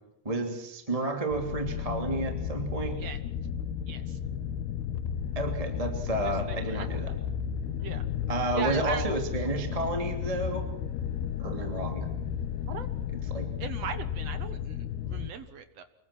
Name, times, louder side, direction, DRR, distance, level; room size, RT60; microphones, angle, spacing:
voice 1, 0.2-3.0 5.3-7.1 8.3-10.7 11.4-12.1 13.3-13.5, right 2 dB, 10° right, 4 dB, 2.3 m, -31 dB
sound 1, 1.3-15.3, left 8 dB, 85° left, 3.1 m, -33 dB
voice 2, 3.9-4.2 6.2-6.9 7.8-8.1 8.5-9.0 12.7-12.9 13.6-15.8, right 7 dB, 60° right, 10 dB, 1.8 m, -39 dB
26.0 x 22.5 x 6.1 m, 0.82 s
omnidirectional pair, 4.6 m